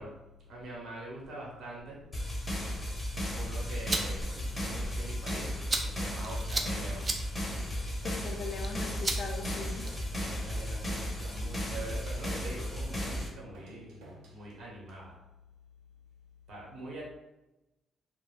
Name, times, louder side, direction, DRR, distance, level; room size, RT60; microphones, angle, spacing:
voice 1, 0.0-2.1 3.3-7.2 10.2-15.2 16.5-17.0, right 1 dB, 65° right, -4 dB, 0.8 m, -44 dB
sound 1, 2.1-13.3, equal, 25° left, 0.7 m, -35 dB
sound 2, 3.6-10.2, right 2 dB, 30° right, 0.3 m, -38 dB
sound 3, 7.5-14.4, right 2 dB, 90° right, 0.5 m, -56 dB
voice 2, 8.0-9.9, left 3 dB, 60° left, 4 dB, 0.4 m, -39 dB
2.3 x 2.0 x 3.1 m, 0.97 s
cardioid pair, 90°, 0 cm